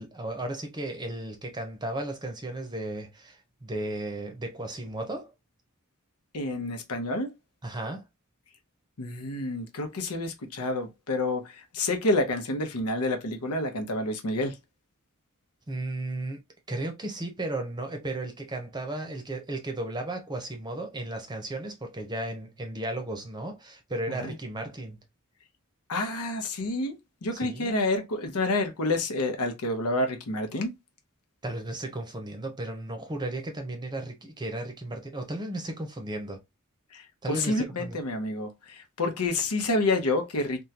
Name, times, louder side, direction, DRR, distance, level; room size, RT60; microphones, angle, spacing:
voice 1, 0.0-5.3 7.6-8.0 15.7-16.4 16.7-25.0 27.3-27.7 31.4-36.4 37.2-38.0, right 1 dB, 20° right, 0.7 m, -35 dB
voice 2, 6.3-7.3 9.0-14.6 24.1-24.3 25.9-30.7 36.9-40.6, left 2 dB, 80° left, 0.8 m, -29 dB
3.5 x 2.3 x 2.8 m
head